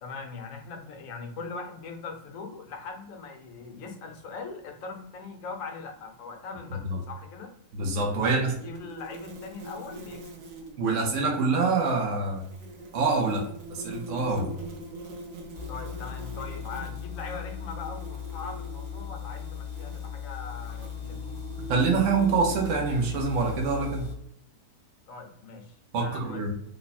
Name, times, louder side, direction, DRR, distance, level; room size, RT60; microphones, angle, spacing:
voice 1, 0.0-7.5 8.1-10.2 15.7-21.4 25.1-26.4, left 4 dB, 65° left, 3 dB, 1.0 m, -41 dB
voice 2, 7.7-8.5 10.8-12.4 12.9-14.5 21.7-24.0 25.9-26.5, right 4 dB, 60° right, 0 dB, 0.9 m, -25 dB
sound 1, 8.5-10.8 12.1-23.2, right 2 dB, 85° right, 1.3 m, -43 dB
sound 2, 15.5-24.1, left 9 dB, 35° left, 0.7 m, -38 dB
3.3 x 2.2 x 4.1 m, 0.73 s
omnidirectional pair, 1.7 m